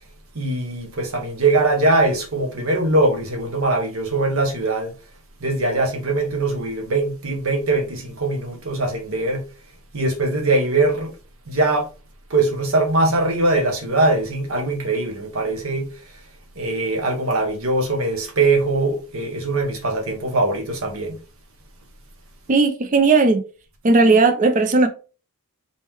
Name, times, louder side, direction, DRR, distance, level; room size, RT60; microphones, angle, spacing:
voice 1, 0.3-4.9 5.4-9.4 9.9-11.1 11.5-11.9 12.3-15.9 16.6-21.2, right 2 dB, 65° right, 1.0 m, -21 dB
voice 2, 22.5-23.4 23.8-24.9, right 3 dB, 35° right, 0.4 m, -16 dB
4.1 x 3.7 x 3.1 m
head